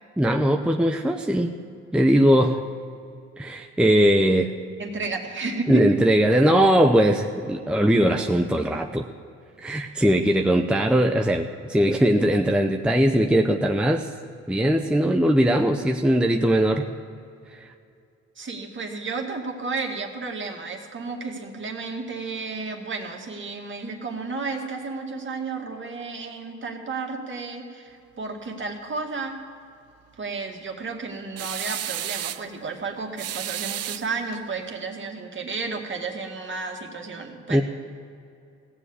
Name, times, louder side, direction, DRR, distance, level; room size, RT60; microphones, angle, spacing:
voice 1, 0.2-1.6 1.9-2.6 3.4-4.5 5.7-9.1 9.6-14.1 14.5-16.9 17.5-17.7 37.5-37.6, equal, 5° right, 3 dB, 0.7 m, -20 dB
voice 2, 4.8-6.0 18.4-29.4 30.2-37.6, right 4 dB, 40° right, 2 dB, 2.2 m, -32 dB
sound 1, 31.4-32.5 33.2-34.4, right 12 dB, 55° right, 0.5 m, -32 dB
16.5 x 7.5 x 9.8 m, 2.5 s
cardioid pair, 90°, 30 cm